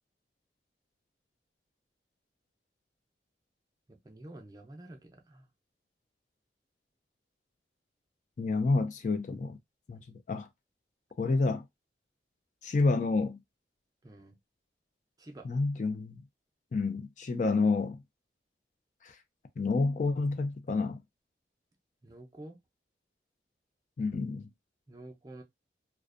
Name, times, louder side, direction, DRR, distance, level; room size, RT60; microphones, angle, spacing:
voice 1, 3.9-5.5 14.0-14.4 15.2-15.5 22.0-22.6 24.9-25.4, right 1 dB, 20° right, 0.5 m, -49 dB
voice 2, 8.4-9.6 9.9-10.5 11.2-11.6 12.6-13.4 15.4-16.2 16.7-18.0 19.0-19.2 19.6-21.0 24.0-24.4, left 3 dB, 45° left, 0.3 m, -29 dB
2.4 x 2.1 x 2.4 m
head